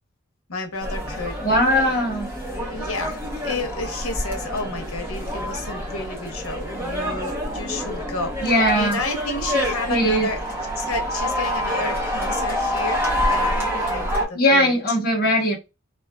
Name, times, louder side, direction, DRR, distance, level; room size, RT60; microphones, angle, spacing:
voice 1, 0.5-1.4 2.7-10.4 10.8-13.0 13.3-14.7, left 3 dB, 80° left, 4 dB, 0.8 m, -31 dB
sound 1, 0.8-14.2, equal, 10° right, 0.7 m, -27 dB
voice 2, 1.4-2.3 8.4-9.0 9.9-10.3 14.3-15.6, equal, 45° left, 1 dB, 0.8 m, -19 dB
2.7 x 2.3 x 2.2 m, 0.25 s
head